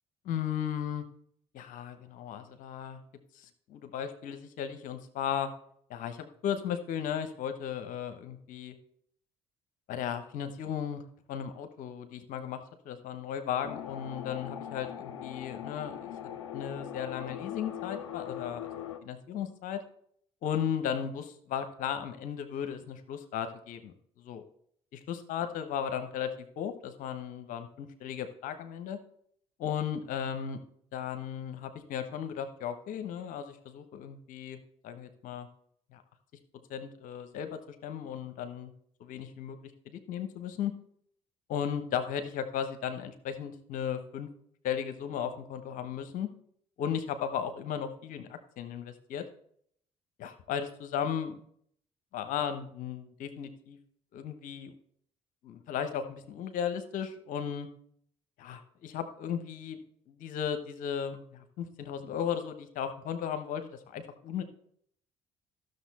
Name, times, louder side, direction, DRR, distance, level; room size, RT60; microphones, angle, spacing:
voice 1, 0.2-1.0 1.5-3.0 3.3-5.5 5.9-8.7 9.9-11.0 11.3-12.6 12.8-16.1 16.5-18.7 19.0-19.8 20.4-24.4 24.9-29.0 29.6-30.6 30.9-34.6 34.8-35.5 35.9-36.0 36.7-38.7 39.0-40.7 41.5-44.3 44.6-46.3 46.8-49.2 50.2-51.4 52.1-53.8 54.1-54.7 55.4-57.7 58.4-59.8 60.1-64.4, left 8 dB, 65° left, 9 dB, 1.0 m, -35 dB
sound 1, 13.6-19.0, left 10 dB, 85° left, 0.6 m, -41 dB
13.0 x 6.6 x 4.1 m, 0.65 s
hypercardioid pair, 50°, 15 cm